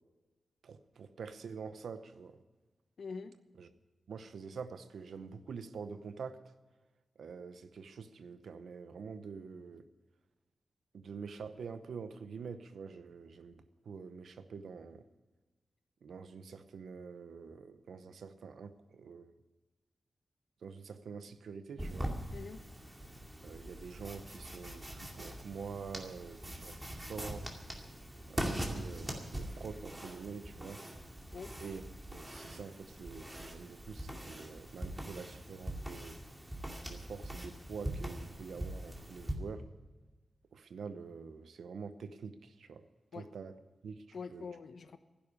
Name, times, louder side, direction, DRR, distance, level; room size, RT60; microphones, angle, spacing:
voice 1, 0.6-2.4 3.6-3.7 4.1-6.4 7.2-9.9 10.9-13.5 13.9-15.0 16.0-19.3 20.6-22.1 23.4-27.5 28.3-30.8 31.6-31.8 32.1-36.2 36.8-39.6 40.5-42.8 43.1-43.5 43.8-44.0 44.3-44.5, right 5 dB, 90° right, 11 dB, 0.8 m, -46 dB
voice 2, 3.0-3.4 22.3-22.6 31.3-31.5 43.1-43.3 44.1-45.0, left 5 dB, 70° left, 11 dB, 0.9 m, -44 dB
sound 1, 21.8-39.4, right 1 dB, 10° right, 2.3 m, -42 dB
12.0 x 10.5 x 9.8 m, 1.3 s
wide cardioid pair, 85°, 0 cm